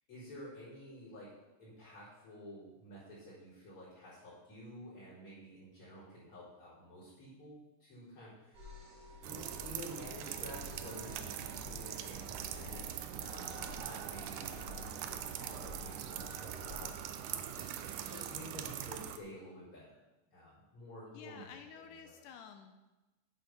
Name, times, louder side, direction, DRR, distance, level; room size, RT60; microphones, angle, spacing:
voice 1, 0.1-1.3 1.6-8.7 9.2-19.9 20.3-22.2, equal, 35° left, -12 dB, 5.1 m, -51 dB
sound 1, 8.5-17.0, left 4 dB, 40° right, 4.3 m, -52 dB
sound 2, 9.2-19.2, right 10 dB, 85° right, 1.8 m, -42 dB
voice 2, 21.1-22.9, left 7 dB, 80° left, 7 dB, 2.0 m, -52 dB
10.0 x 8.1 x 6.1 m, 1.1 s
omnidirectional pair, 4.4 m